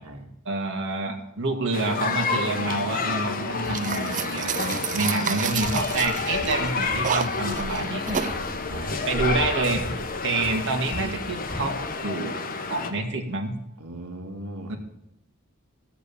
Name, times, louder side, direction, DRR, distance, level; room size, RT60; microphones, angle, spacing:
voice 1, 0.5-8.2 9.1-9.8 10.2-11.8 12.0-12.4 12.6-13.5 14.7-14.8, right 3 dB, 55° right, 2 dB, 1.8 m, -27 dB
sound 1, 1.7-12.9, left 4 dB, 40° left, 1.2 m, -30 dB
sound 2, 3.6-8.4, right 8 dB, 35° right, 0.5 m, -30 dB
voice 2, 3.8-5.3 7.4-7.9 8.7-9.2 10.9-11.1 13.8-14.8, right 1 dB, 90° right, 3 dB, 1.8 m, -39 dB
sound 3, 5.5-12.0, equal, 10° left, 1.2 m, -37 dB
15.0 x 7.3 x 6.9 m, 0.79 s
head